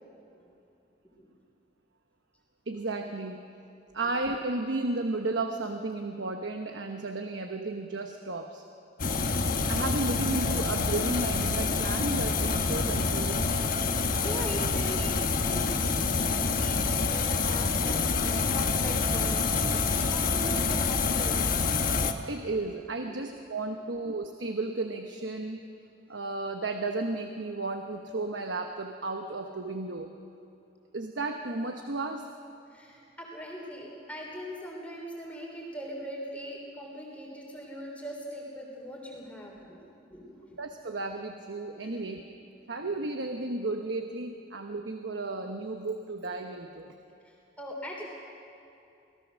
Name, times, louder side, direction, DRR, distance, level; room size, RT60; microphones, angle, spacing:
voice 1, 2.7-3.5 3.9-8.7 9.7-13.5 22.3-25.6 26.1-30.1 30.9-32.3 40.6-42.2 42.7-46.9, right 2 dB, 70° right, 5 dB, 1.1 m, -33 dB
sound 1, 9.0-22.1, left 4 dB, 45° left, 1.2 m, -27 dB
voice 2, 14.2-21.5 23.1-23.2 32.7-39.8 40.1-40.6 41.8-42.1 47.2-48.0, equal, 10° left, -2 dB, 3.3 m, -41 dB
25.5 x 17.5 x 6.4 m, 2.7 s
head